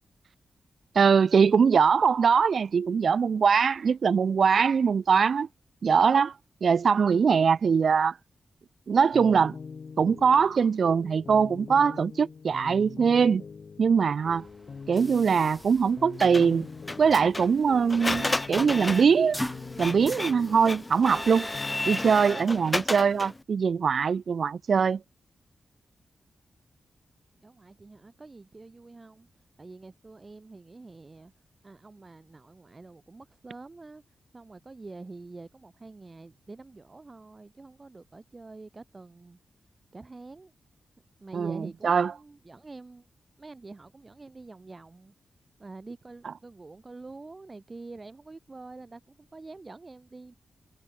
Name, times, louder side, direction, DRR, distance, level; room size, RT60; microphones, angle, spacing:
voice 1, 1.0-5.5 5.8-6.3 6.6-8.1 8.9-9.5 10.0-13.4 13.8-14.4 14.9-16.7 17.0-19.4 19.8-21.5 21.9-25.0 41.3-41.6 41.8-42.1, right 6 dB, 65° right, 0.4 m, -22 dB
sound 1, 9.1-22.5, left 5 dB, 55° left, 1.2 m, -44 dB
sound 2, 14.3-22.0, equal, 5° left, 5.8 m, -44 dB
Printer, 16.2-23.4, left 2 dB, 20° left, 0.8 m, -33 dB
voice 2, 27.4-31.3 31.6-34.0 34.3-39.4 39.9-40.5 41.2-43.1 43.4-45.1 45.6-50.3, right 3 dB, 35° right, 2.9 m, -46 dB
cardioid pair, 75°, 0 cm